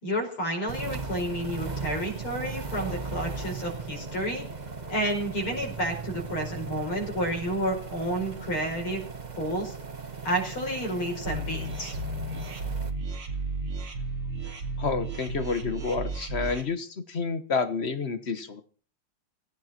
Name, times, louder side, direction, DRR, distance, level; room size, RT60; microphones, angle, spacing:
voice 1, 0.0-4.4 4.9-9.0 9.3-9.7 10.2-12.0, right 1 dB, 75° left, 0 dB, 6.0 m, -30 dB
sound 1, 0.7-12.9, right 4 dB, 25° right, 1.0 m, -38 dB
sound 2, 11.3-16.6, right 2 dB, 80° right, 3.7 m, -33 dB
voice 2, 14.8-18.6, left 4 dB, 35° left, 11 dB, 1.3 m, -29 dB
17.0 x 17.0 x 4.4 m, 0.41 s
omnidirectional pair, 2.3 m